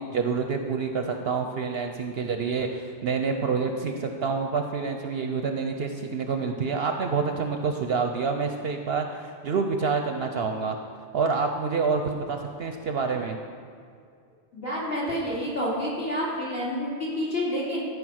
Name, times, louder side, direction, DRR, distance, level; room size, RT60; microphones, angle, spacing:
voice 1, 0.0-10.8 11.1-13.4, right 5 dB, 60° right, 5 dB, 0.7 m, -27 dB
voice 2, 14.5-17.8, equal, 50° left, -7 dB, 3.2 m, -29 dB
13.0 x 5.0 x 6.3 m, 2.3 s
omnidirectional pair, 1.3 m